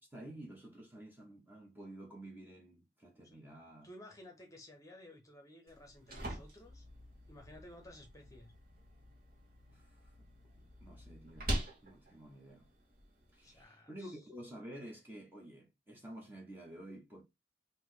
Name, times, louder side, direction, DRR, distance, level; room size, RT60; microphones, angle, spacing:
voice 1, 0.1-3.9 9.7-10.0 10.5-11.5 11.8-12.7 13.3-17.2, right 1 dB, 10° right, 1.0 m, -51 dB
voice 2, 3.8-6.8 7.3-8.5 13.4-14.2, left 1 dB, 15° left, 1.0 m, -55 dB
sound 1, 5.7-13.6, equal, 50° right, 1.3 m, -44 dB
3.4 x 2.7 x 3.7 m
head